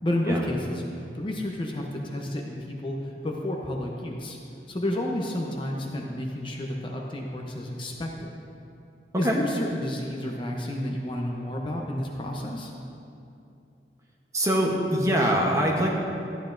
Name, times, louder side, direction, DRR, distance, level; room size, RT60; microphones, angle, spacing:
voice 1, 0.0-4.4 4.7-8.4 9.2-12.7, left 1 dB, 30° left, 0 dB, 0.7 m, -31 dB
voice 2, 14.3-15.9, equal, 20° right, -1 dB, 0.9 m, -23 dB
13.0 x 9.2 x 2.6 m, 2.6 s
head